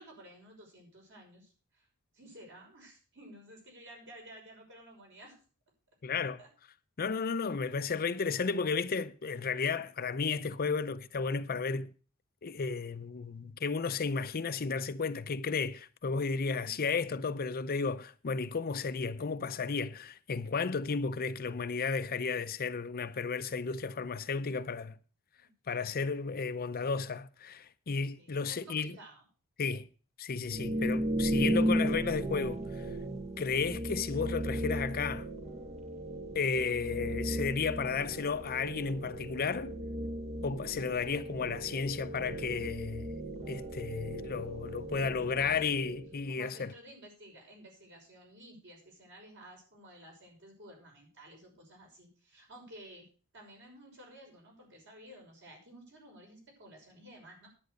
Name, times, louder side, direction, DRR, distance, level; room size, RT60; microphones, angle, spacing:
voice 1, 0.0-1.9 2.1-5.4 6.4-6.5 7.6-8.7 16.6-16.8 25.4-25.5 28.1-29.2 45.3-45.7 46.3-53.1 53.3-57.5, right 1 dB, 55° right, 6.0 m, -53 dB
voice 2, 6.0-6.4 7.0-11.9 12.4-25.0 25.7-29.0 29.6-29.9 30.2-32.9 33.4-35.3 36.3-39.8 40.4-43.1 43.5-46.7, left 5 dB, 40° left, 0.6 m, -33 dB
sound 1, 30.5-46.2, right 1 dB, 30° right, 0.8 m, -36 dB
10.5 x 8.9 x 6.4 m
head